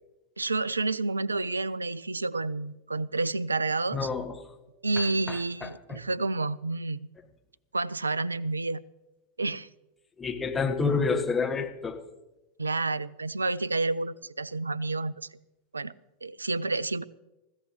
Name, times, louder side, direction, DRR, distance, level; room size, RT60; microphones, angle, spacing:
voice 1, 0.4-4.1 4.8-7.1 7.7-8.8 9.4-9.7 12.6-15.3 15.7-15.9 16.2-17.0, right 3 dB, 80° right, 24 dB, 0.4 m, -29 dB
voice 2, 3.9-4.4 5.0-6.0 10.2-12.0, left 4 dB, 15° left, 3 dB, 1.4 m, -29 dB
21.0 x 15.5 x 3.1 m, 1.0 s
figure-of-eight pair, 90°, 0 cm